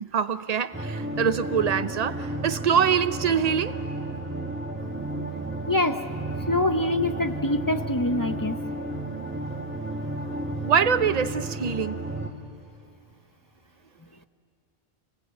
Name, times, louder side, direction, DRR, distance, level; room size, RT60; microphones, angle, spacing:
voice 1, 0.0-3.8 10.6-12.0, right 7 dB, 45° right, 13 dB, 0.7 m, -24 dB
sound 1, 0.7-12.3, right 2 dB, 10° right, 1.7 m, -32 dB
voice 2, 5.7-6.0 6.5-8.6, left 1 dB, 20° left, 8 dB, 0.7 m, -25 dB
29.5 x 18.5 x 8.1 m, 2.7 s
omnidirectional pair, 1.1 m